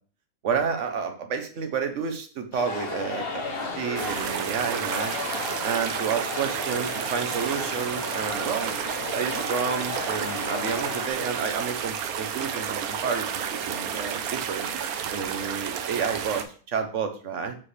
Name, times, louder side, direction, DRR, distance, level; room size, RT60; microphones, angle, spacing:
voice 1, 0.4-3.4 3.8-5.2 5.6-8.8 9.1-14.7 15.1-17.5, right 6 dB, 60° right, 7 dB, 1.2 m, -30 dB
sound 1, 2.5-11.1, left 3 dB, 50° left, 1.0 m, -35 dB
sound 2, 4.0-16.4, right 8 dB, 80° right, 1.2 m, -31 dB
7.2 x 4.9 x 3.3 m, 0.42 s
omnidirectional pair, 1.5 m